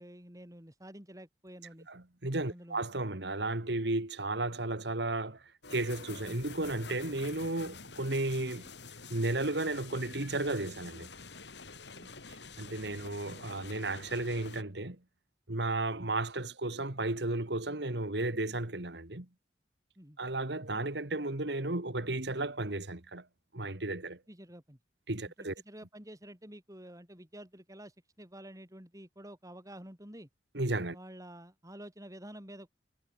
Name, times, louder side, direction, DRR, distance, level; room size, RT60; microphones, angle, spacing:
voice 1, 0.0-1.9 2.5-2.8 6.4-6.5 11.9-12.1 20.0-20.2 24.3-24.8 25.4-30.3 30.9-32.7, right 1 dB, 20° right, 6.8 m, -49 dB
voice 2, 1.9-8.7 9.1-11.1 12.6-15.0 15.5-19.3 20.2-23.3 23.5-24.2 25.1-25.5 30.5-31.0, right 2 dB, 65° right, 2.2 m, -34 dB
sound 1, 5.6-14.6, left 4 dB, 70° left, 6.1 m, -48 dB
head